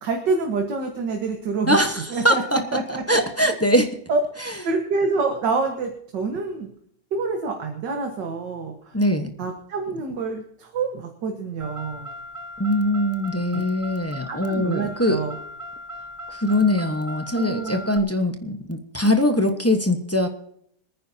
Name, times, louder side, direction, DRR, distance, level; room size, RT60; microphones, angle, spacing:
voice 1, 0.0-1.8 2.1-2.4 2.7-3.2 4.1-4.2 4.7-6.7 7.1-8.9 9.4-12.1 13.5-13.6 14.3-15.4 17.3-17.9, right 4 dB, 85° right, 3 dB, 2.1 m, -27 dB
voice 2, 1.7-2.6 2.9-3.9 8.9-9.3 12.6-15.2 16.3-20.3, left 1 dB, 10° left, 5 dB, 0.8 m, -22 dB
Car, 11.6-18.0, left 1 dB, 20° right, 0.5 m, -38 dB
26.5 x 9.7 x 2.8 m, 0.68 s
omnidirectional pair, 1.9 m